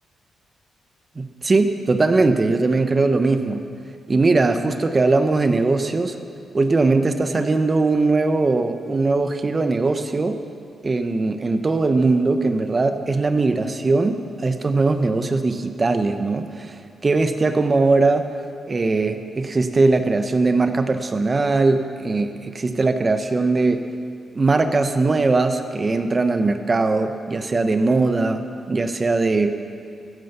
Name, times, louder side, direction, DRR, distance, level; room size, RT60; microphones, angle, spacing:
voice 1, 1.2-3.6 4.1-6.1 6.5-10.4 10.8-16.8 17.0-18.3 18.7-23.9 24.3-28.4 28.7-29.5, right 3 dB, 35° right, 8 dB, 1.0 m, -20 dB
14.5 x 9.6 x 6.9 m, 2.3 s
cardioid pair, 70°, 0 cm